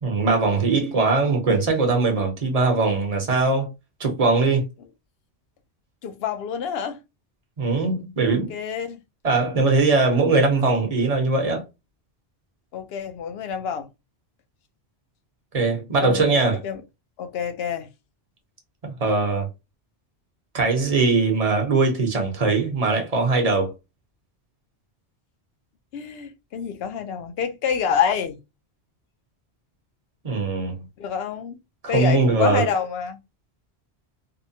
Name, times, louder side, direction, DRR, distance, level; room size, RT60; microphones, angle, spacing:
voice 1, 0.0-3.7 4.0-4.7 7.6-8.5 9.2-11.6 15.5-16.6 18.8-19.5 20.5-23.7 30.2-30.8 31.8-32.7, right 3 dB, 40° right, 0.8 m, -21 dB
voice 2, 6.0-7.0 8.2-9.0 12.7-13.9 16.0-16.8 17.2-17.9 25.9-28.4 31.0-31.6 31.9-33.2, left 7 dB, 70° left, 0.8 m, -27 dB
2.7 x 2.1 x 2.6 m
omnidirectional pair, 1.1 m